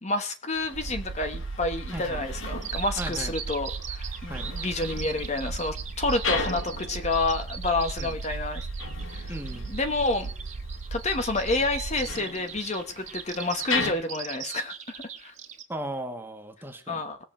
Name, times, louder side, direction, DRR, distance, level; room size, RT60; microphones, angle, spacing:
voice 1, 0.0-8.7 9.1-9.3 9.7-10.3 10.9-15.3 16.9-17.2, left 2 dB, 35° left, 7 dB, 1.1 m, -29 dB
sound 1, 0.5-13.9, left 4 dB, 75° left, 1.6 m, -38 dB
sound 2, 0.7-12.1, right 3 dB, 90° right, 0.7 m, -36 dB
voice 2, 1.9-2.3 3.0-3.3 4.3-4.5 8.0-8.1 9.3-9.7 15.7-17.0, right 1 dB, 10° right, 5 dB, 1.4 m, -36 dB
Bird vocalization bird call bird song, 2.6-15.6, right 8 dB, 35° right, 1.7 m, -40 dB
20.5 x 7.2 x 4.4 m, 0.35 s
head